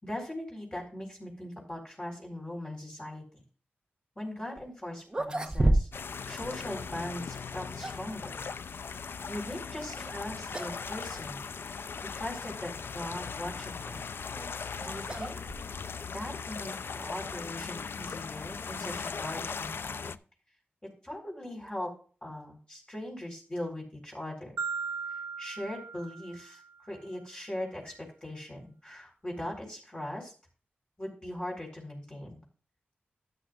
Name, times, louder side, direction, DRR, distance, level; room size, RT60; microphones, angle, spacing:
voice 1, 0.0-3.2 4.2-5.9 6.3-8.5 9.3-11.4 12.1-14.0 14.8-15.4 16.1-20.2 21.0-21.9 22.2-24.5 25.4-27.9 28.2-30.3 31.0-32.4, left 1 dB, 25° left, -1 dB, 4.0 m, -40 dB
sound 1, 4.6-4.7 5.1-6.2 6.4-6.6 7.4-8.1 9.9-10.2 10.5-10.8 11.1-11.2 12.0-12.1 13.9-16.0, right 1 dB, 20° right, 1.0 m, -31 dB
sound 2, 5.9-20.2, left 5 dB, 70° left, 0.5 m, -39 dB
Marimba xylophone, 24.6-26.8, right 5 dB, 70° right, 0.7 m, -37 dB
12.5 x 9.9 x 2.5 m, 0.39 s
wide cardioid pair, 95°, 4 cm